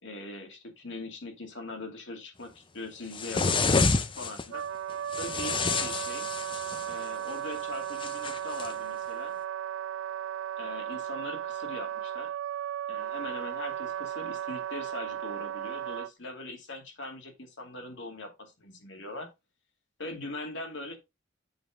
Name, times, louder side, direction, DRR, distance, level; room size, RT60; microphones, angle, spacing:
voice 1, 0.0-4.6 5.2-6.3 6.9-9.3 10.6-12.3 12.9-19.3 20.0-21.0, left 2 dB, 65° left, 2.5 m, -41 dB
sound 1, 3.1-4.4 5.1-6.9 8.0-8.7, left 4 dB, 25° left, 0.6 m, -28 dB
Wind instrument woodwind instrument, 4.5-16.1, right 10 dB, 75° right, 0.3 m, -35 dB
8.1 x 5.4 x 3.7 m
head